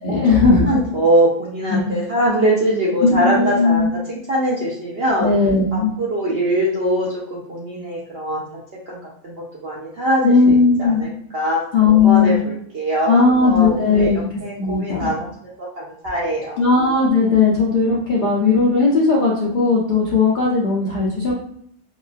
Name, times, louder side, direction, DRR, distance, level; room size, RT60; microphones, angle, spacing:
voice 1, 0.0-0.8 1.7-1.8 3.0-3.9 5.2-5.9 10.2-11.0 11.7-12.4 13.1-14.3 14.6-15.1 16.6-21.3, left 4 dB, 65° left, -5 dB, 0.5 m, -16 dB
voice 2, 0.5-5.3 5.7-8.4 8.9-15.3 15.6-16.6, right 1 dB, 65° right, -5 dB, 0.6 m, -22 dB
2.9 x 2.2 x 2.4 m, 0.69 s
omnidirectional pair, 1.6 m